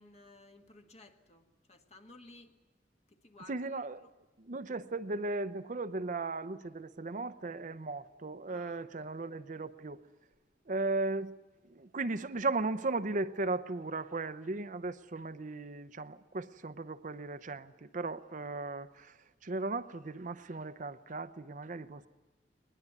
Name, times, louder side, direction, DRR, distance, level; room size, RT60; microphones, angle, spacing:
voice 1, 0.0-2.6 3.1-3.7 3.9-4.1 8.5-9.1, left 2 dB, 40° left, 1.7 m, -57 dB
voice 2, 3.5-4.0 4.5-10.0 10.7-11.4 11.7-19.1 19.4-22.1, right 3 dB, 45° right, 0.7 m, -36 dB
21.0 x 21.0 x 9.4 m
head